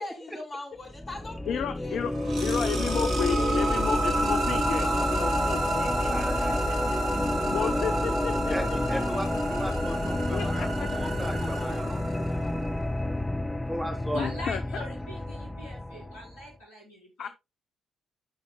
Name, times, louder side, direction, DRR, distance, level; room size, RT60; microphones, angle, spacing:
voice 1, 0.0-2.0 4.7-5.3 10.3-12.6, left 2 dB, 40° left, 4.4 m, -42 dB
sound 1, 0.9-16.3, left 1 dB, 15° left, 1.4 m, -29 dB
voice 2, 1.5-2.1 2.4-6.1 6.7-6.8 7.5-8.5 10.3-10.7 14.1-14.6 17.2-17.3, left 8 dB, 55° left, 0.6 m, -32 dB
sound 2, 1.9-12.7, right 3 dB, 55° right, 1.8 m, -33 dB
voice 3, 6.1-6.6 8.5-10.7 11.0-12.3 13.7-14.3, equal, 5° right, 3.4 m, -36 dB
voice 4, 14.1-17.3, equal, 75° left, 4.2 m, -42 dB
15.0 x 5.8 x 2.2 m
figure-of-eight pair, 40°, 0 cm